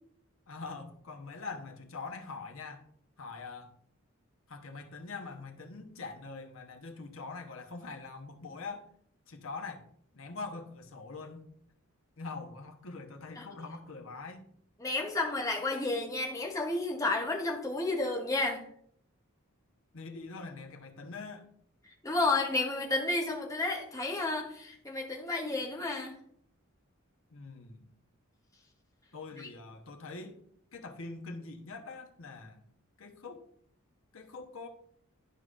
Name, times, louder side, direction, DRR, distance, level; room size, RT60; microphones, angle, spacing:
voice 1, 0.5-2.8 3.2-3.7 4.5-8.9 9.3-9.8 10.1-11.5 12.2-14.5 19.9-21.5 27.3-27.9 29.1-30.4 30.7-32.6 33.0-33.5 34.1-34.7, left 3 dB, 70° left, 1.0 m, -43 dB
voice 2, 14.8-18.7 22.0-26.2 29.4-29.5, left 2 dB, 15° left, 1.0 m, -31 dB
11.5 x 4.9 x 2.5 m
head